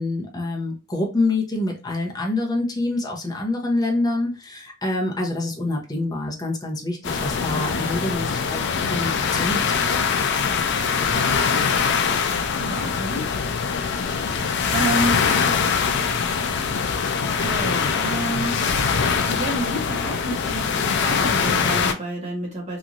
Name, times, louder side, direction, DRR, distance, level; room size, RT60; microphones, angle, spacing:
voice 1, 0.0-9.7, left 2 dB, 20° left, 0 dB, 0.8 m, -26 dB
sound 1, 7.0-21.9, left 6 dB, 60° left, 0.4 m, -23 dB
voice 2, 12.5-13.2 14.7-15.2 17.3-18.5 19.3-22.8, right 1 dB, 35° right, -3 dB, 1.0 m, -29 dB
3.0 x 2.5 x 2.5 m, 0.30 s
head